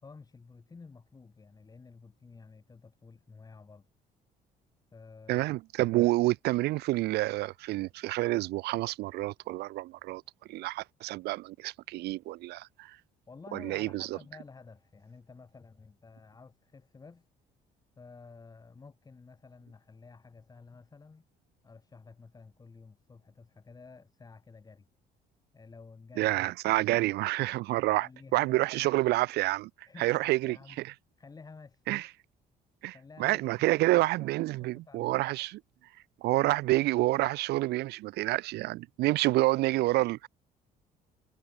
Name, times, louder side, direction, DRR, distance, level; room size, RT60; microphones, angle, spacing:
voice 1, 0.0-3.9 4.9-5.5 13.3-17.3 17.9-21.2 21.6-24.9 25.5-26.3 28.0-28.5 29.9-30.8 31.2-31.8 32.9-34.3 34.6-35.2 39.3-39.4, left 4 dB, 20° left, 1.6 m, -52 dB
voice 2, 5.3-10.2 10.5-13.0 13.5-14.1 26.2-29.7 30.0-30.6 31.9-32.1 32.8-32.9 33.2-35.6 36.2-40.3, right 18 dB, 75° right, 0.5 m, -28 dB
cardioid pair, 110°, 17 cm